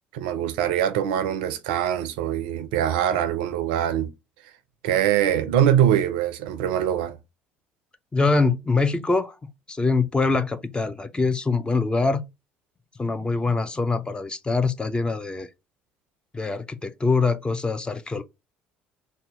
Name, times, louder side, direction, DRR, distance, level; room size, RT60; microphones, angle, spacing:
voice 1, 0.1-4.1 4.8-7.2, right 10 dB, 65° right, 0.4 m, -23 dB
voice 2, 8.1-9.4 9.7-12.2 13.0-15.5 16.3-18.2, left 3 dB, 15° left, 0.4 m, -24 dB
2.7 x 2.2 x 3.6 m
figure-of-eight pair, 55°, 6 cm